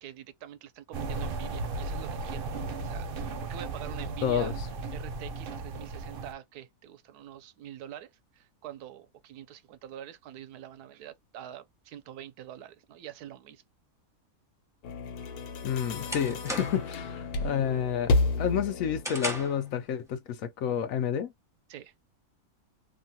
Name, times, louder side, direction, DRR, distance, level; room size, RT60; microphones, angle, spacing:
voice 1, 0.0-4.6 4.9-8.1 8.4-13.6 21.7-21.9, right 11 dB, 90° right, 1.1 m, -45 dB
sound 1, 0.9-6.3, right 3 dB, 65° right, 0.5 m, -35 dB
voice 2, 4.2-4.5 15.6-21.3, left 8 dB, 70° left, 0.9 m, -30 dB
sound 2, 14.8-19.2, left 3 dB, 90° left, 1.2 m, -31 dB
sound 3, 15.2-17.0 17.4-17.7 18.1-19.7, equal, 5° right, 0.6 m, -37 dB
3.0 x 2.2 x 2.6 m
omnidirectional pair, 1.6 m